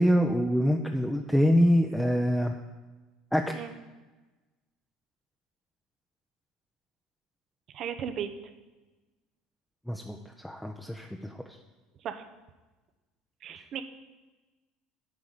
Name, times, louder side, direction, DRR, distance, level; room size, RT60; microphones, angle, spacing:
voice 1, 0.0-2.6 3.3-3.5 9.9-11.3 13.5-13.7, equal, ahead, 2 dB, 0.6 m, -25 dB
voice 2, 7.7-8.3 12.0-12.3 13.4-13.8, right 8 dB, 55° right, 8 dB, 0.8 m, -35 dB
9.4 x 4.7 x 6.8 m, 1.2 s
hypercardioid pair, 75°, 0 cm